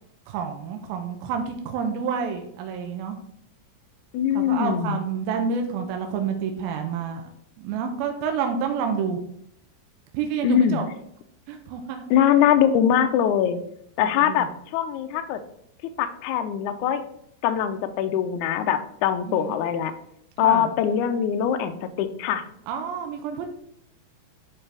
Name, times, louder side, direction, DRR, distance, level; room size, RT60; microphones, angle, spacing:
voice 1, 0.3-3.2 4.4-7.3 7.6-9.2 10.1-10.8 11.5-12.1 14.0-14.5 19.3-19.6 20.4-20.7 22.7-23.5, right 6 dB, 85° right, 4 dB, 2.6 m, -29 dB
voice 2, 4.1-4.9 10.4-10.8 12.1-13.6 14.0-15.4 15.8-17.0 17.4-19.9 20.4-22.4, left 9 dB, 85° left, 8 dB, 1.7 m, -22 dB
10.0 x 4.5 x 3.3 m, 0.71 s
omnidirectional pair, 4.2 m